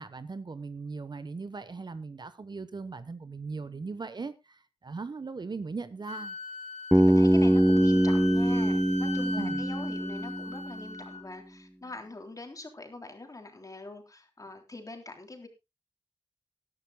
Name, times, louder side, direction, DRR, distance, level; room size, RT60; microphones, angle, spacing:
voice 1, 0.0-6.4 9.4-9.6, right 4 dB, 40° right, 13 dB, 0.9 m, -39 dB
Wind instrument woodwind instrument, 6.1-11.2, left 3 dB, 80° left, 1.6 m, -40 dB
voice 2, 6.9-15.5, left 2 dB, 30° left, 4 dB, 3.5 m, -43 dB
Bass guitar, 6.9-10.9, right 1 dB, ahead, 0.8 m, -23 dB
19.0 x 12.0 x 2.2 m, 0.23 s
cardioid pair, 65°, 11 cm